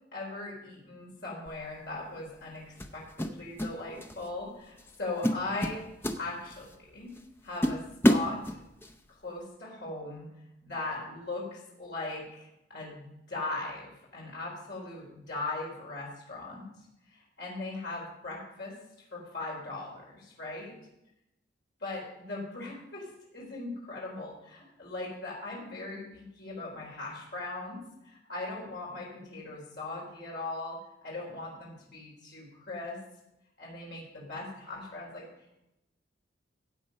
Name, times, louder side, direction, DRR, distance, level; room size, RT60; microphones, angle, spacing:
voice 1, 0.1-5.8 6.2-7.1 7.4-8.6 9.2-10.3 10.6-16.7 17.1-18.7 19.1-20.7 21.8-33.0 33.6-35.2, left 2 dB, 55° left, -4 dB, 4.1 m, -39 dB
sound 1, 1.5-1.7 2.8-3.7 4.0-4.3 4.8-4.9 5.2-6.7 7.2-7.3 7.6-8.9, equal, 10° left, 0.7 m, -28 dB
15.5 x 8.3 x 5.3 m, 0.87 s
head